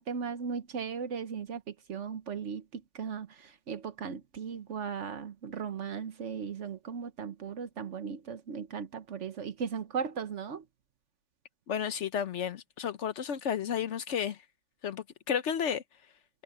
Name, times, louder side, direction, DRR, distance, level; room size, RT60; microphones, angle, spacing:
voice 1, 0.0-1.6 1.9-10.6, right 6 dB, 80° right, 1.4 m, -37 dB
voice 2, 11.7-14.4 14.8-15.8, left 8 dB, 75° left, 1.1 m, -32 dB
omnidirectional pair, 1.2 m